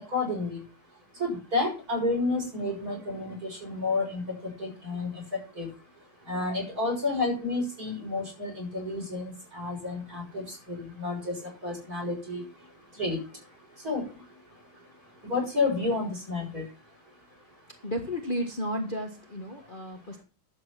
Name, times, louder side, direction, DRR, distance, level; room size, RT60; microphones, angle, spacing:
voice 1, 0.1-0.6 1.2-4.2 4.6-5.1 5.6-5.7 6.3-11.3 11.6-12.4 13.0-13.2 13.8-14.0 15.3-16.6, left 3 dB, 50° right, 1 dB, 7.0 m, -30 dB
voice 2, 17.8-20.2, equal, 30° left, 3 dB, 1.6 m, -33 dB
11.5 x 7.9 x 6.0 m, 0.33 s
omnidirectional pair, 2.1 m